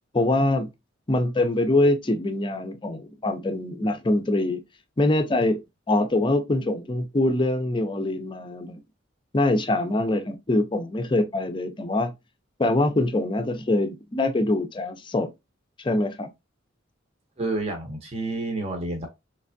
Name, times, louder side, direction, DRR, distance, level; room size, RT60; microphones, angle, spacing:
voice 1, 0.1-0.7 1.1-4.6 5.0-5.6 5.9-8.8 9.3-12.1 12.6-15.3 15.8-16.3, left 2 dB, 25° left, 0.5 m, -24 dB
voice 2, 17.4-19.1, right 2 dB, 35° right, 0.8 m, -29 dB
3.3 x 3.2 x 2.5 m
head